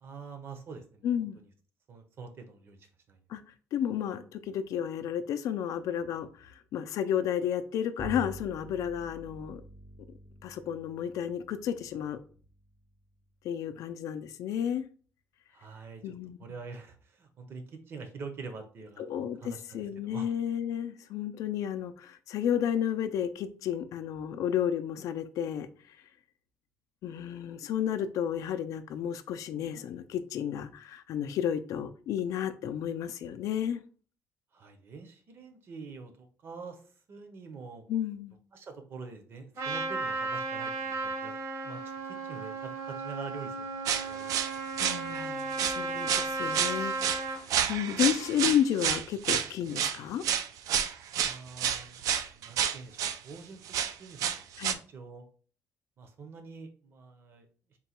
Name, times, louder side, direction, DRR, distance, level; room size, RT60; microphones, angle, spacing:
voice 1, 0.0-1.1 1.9-3.2 15.5-16.0 16.4-19.1 19.4-20.3 34.5-36.8 37.1-37.8 38.5-41.3 41.6-41.8 42.2-44.3 51.2-53.6 54.0-54.4 54.7-55.2 56.0-57.8, right 4 dB, 45° right, 0.7 m, -45 dB
voice 2, 1.0-1.4 3.3-3.4 3.7-9.6 10.4-12.2 13.4-14.9 16.0-16.4 19.0-26.0 27.0-33.8 37.9-38.3 44.8-50.2 54.6-54.8, left 9 dB, 70° left, 0.4 m, -32 dB
Bowed string instrument, 8.0-13.6, right 1 dB, 5° right, 0.4 m, -47 dB
Trumpet, 39.6-47.4, right 3 dB, 60° right, 1.1 m, -35 dB
sound 1, 43.9-45.3 45.5-45.8 46.1-53.2 53.7-54.7, right 9 dB, 80° right, 0.3 m, -29 dB
3.8 x 2.2 x 4.2 m
cardioid pair, 170°, 6 cm